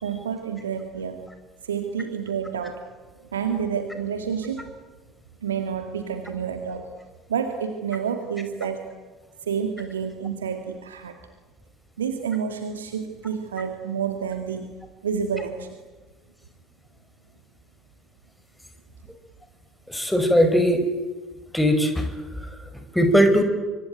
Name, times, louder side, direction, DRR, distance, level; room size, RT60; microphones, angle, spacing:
voice 1, 0.0-1.2 1.6-2.8 3.3-4.7 5.4-6.8 7.3-8.8 9.4-11.1 12.0-14.7 15.0-15.7, right 7 dB, 75° right, 6 dB, 2.0 m, -29 dB
voice 2, 19.9-20.8 21.5-23.4, equal, 5° left, 7 dB, 5.4 m, -20 dB
26.0 x 24.0 x 9.1 m, 1.3 s
figure-of-eight pair, 60°, 0 cm